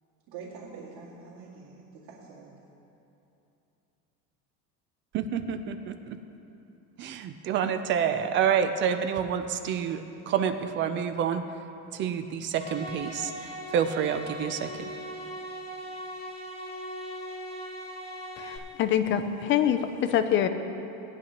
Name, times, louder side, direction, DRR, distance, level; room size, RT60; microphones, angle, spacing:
voice 1, 0.3-2.7, right 5 dB, 75° right, -8 dB, 2.3 m, -45 dB
voice 2, 5.1-6.2 7.0-11.4 11.9-14.9, right 8 dB, 35° right, 9 dB, 0.4 m, -28 dB
sound 1, 12.5-18.6, equal, 15° left, 1.1 m, -39 dB
voice 3, 18.4-20.5, left 9 dB, 35° left, 9 dB, 0.4 m, -25 dB
18.5 x 10.0 x 2.9 m, 3.0 s
cardioid pair, 170°, 36 cm